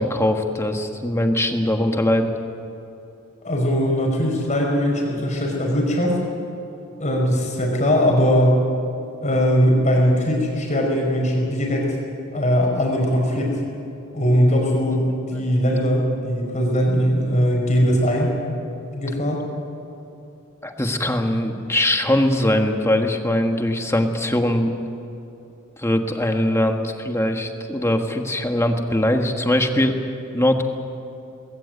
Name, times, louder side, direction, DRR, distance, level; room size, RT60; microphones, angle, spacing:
voice 1, 0.0-2.3 15.3-15.4 20.6-24.7 25.8-29.9 30.3-30.6, left 1 dB, 15° left, 4 dB, 1.5 m, -21 dB
voice 2, 3.4-6.2 7.0-8.6 9.2-12.0 12.3-13.5 14.1-18.3 18.9-19.4, equal, 35° left, -1 dB, 5.1 m, -20 dB
20.5 x 16.5 x 9.3 m, 2.8 s
head